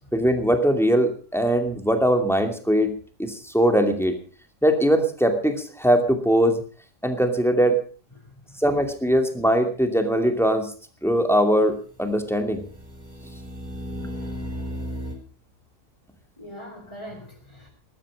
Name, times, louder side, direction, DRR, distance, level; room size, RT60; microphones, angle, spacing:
voice 1, 0.1-2.9 3.2-4.1 4.6-6.6 7.0-7.8 8.6-10.7 11.0-12.6, equal, ahead, 5 dB, 2.4 m, -21 dB
voice 2, 8.2-8.7 16.4-17.7, equal, 20° left, -2 dB, 4.0 m, -42 dB
sound 1, 12.2-15.1, equal, 25° right, 4.1 m, -35 dB
19.5 x 12.5 x 5.1 m, 0.39 s
omnidirectional pair, 1.7 m